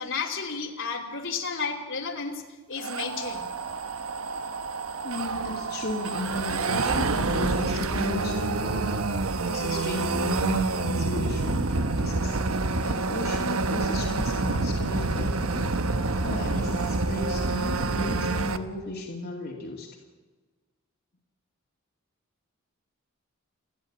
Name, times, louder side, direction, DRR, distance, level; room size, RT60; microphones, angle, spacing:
voice 1, 0.0-2.4 2.7-3.5, left 5 dB, 65° left, 1 dB, 3.1 m, -32 dB
sound 1, 2.8-18.6, right 3 dB, 75° right, 1.2 m, -28 dB
voice 2, 5.0-8.9 9.4-12.4 12.8-15.7 16.2-19.9, left 1 dB, 50° left, 0 dB, 2.6 m, -34 dB
28.5 x 11.0 x 8.8 m, 1.3 s
head